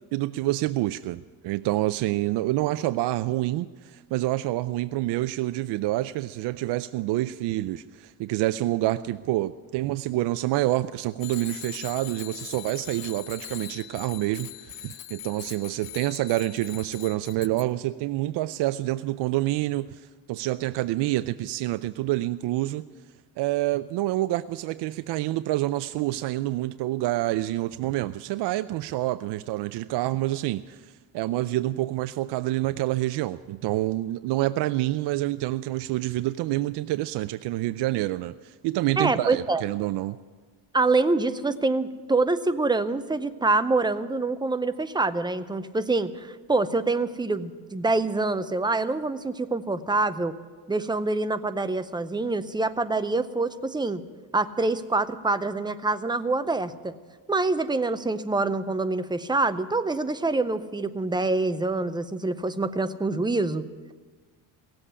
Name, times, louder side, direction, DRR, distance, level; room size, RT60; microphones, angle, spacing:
voice 1, 0.1-22.9 23.4-40.2, right 16 dB, 65° right, 12 dB, 0.5 m, -27 dB
Bicycle bell, 11.2-17.6, left 14 dB, 50° left, 0.7 m, -41 dB
voice 2, 39.0-39.6 40.7-50.3 50.7-54.0 54.3-57.0 57.3-63.6, right 3 dB, 10° right, 11 dB, 0.5 m, -26 dB
17.0 x 7.9 x 9.7 m, 1.4 s
cardioid pair, 120°, 46 cm